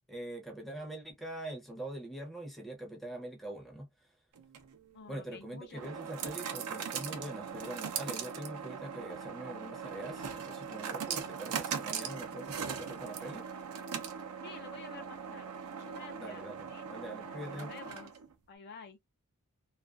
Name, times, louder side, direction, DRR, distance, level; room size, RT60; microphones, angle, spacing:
voice 1, 0.1-3.9 5.1-13.5 16.2-17.7, right 1 dB, ahead, 0.6 m, -43 dB
sound 1, 4.4-18.3, right 7 dB, 85° right, 0.5 m, -40 dB
voice 2, 4.9-6.1 14.4-16.9 17.2-19.0, left 5 dB, 50° left, 0.5 m, -51 dB
2.4 x 2.3 x 2.3 m
head